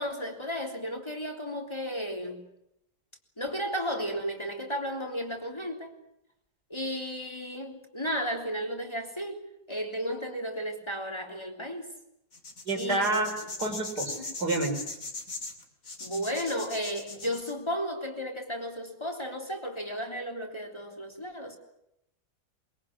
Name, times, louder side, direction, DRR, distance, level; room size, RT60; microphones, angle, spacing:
voice 1, 0.0-2.4 3.4-5.9 6.7-11.9 12.8-13.2 16.0-21.6, equal, 15° left, 2 dB, 3.5 m, -34 dB
sound 1, 12.3-17.5, left 3 dB, 55° left, 3.3 m, -40 dB
voice 2, 12.7-13.3 13.6-14.8, right 2 dB, 80° right, 3 dB, 5.2 m, -28 dB
23.0 x 22.5 x 8.7 m, 0.82 s
omnidirectional pair, 1.7 m